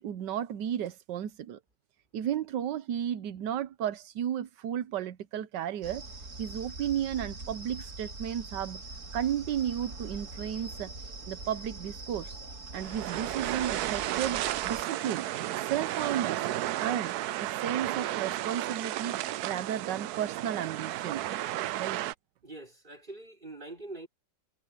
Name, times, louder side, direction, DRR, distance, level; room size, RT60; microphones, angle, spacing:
voice 1, 0.0-1.6 2.1-6.1 6.4-8.8 9.1-12.4 12.7-15.3 15.6-16.4 16.8-19.1 19.4-21.3 21.8-22.0, right 10 dB, 90° right, 1.5 m, -33 dB
sound 1, 5.8-14.8, right 2 dB, 45° right, 2.8 m, -43 dB
sound 2, 12.7-22.1, right 14 dB, 70° right, 1.1 m, -33 dB
voice 2, 22.4-24.1, right 2 dB, 25° right, 6.1 m, -44 dB
omnidirectional pair, 1.8 m